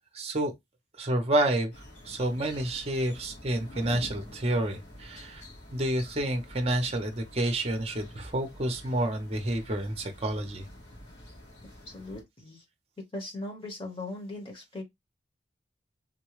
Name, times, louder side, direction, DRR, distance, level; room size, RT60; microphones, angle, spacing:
voice 1, 0.1-0.5 1.0-1.7 2.0-5.4 5.7-10.6, right 1 dB, 35° right, 0.7 m, -29 dB
sound 1, 1.7-12.2, left 1 dB, 75° left, 1.9 m, -48 dB
voice 2, 11.9-12.6 13.1-14.8, left 2 dB, 30° left, 1.0 m, -39 dB
3.8 x 2.2 x 3.0 m
head